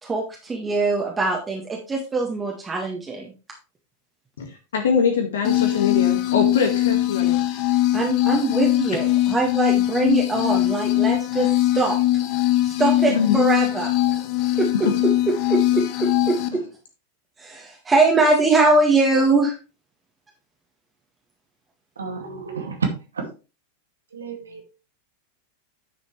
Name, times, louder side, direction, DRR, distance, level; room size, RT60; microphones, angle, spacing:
voice 1, 0.0-3.3 7.9-11.5 11.7-12.0 12.6-13.9 14.6-16.6 17.4-19.6, right 3 dB, 15° right, 0 dB, 1.8 m, -22 dB
voice 2, 4.7-7.4 13.1-13.3, left 6 dB, 60° left, 4 dB, 1.9 m, -22 dB
sound 1, 5.4-16.5, left 15 dB, 40° left, 0.9 m, -21 dB
voice 3, 22.0-22.9 23.1-23.3 24.1-24.7, right 5 dB, 70° right, 3 dB, 2.4 m, -29 dB
10.0 x 6.5 x 3.3 m, 0.32 s
figure-of-eight pair, 90°, 0 cm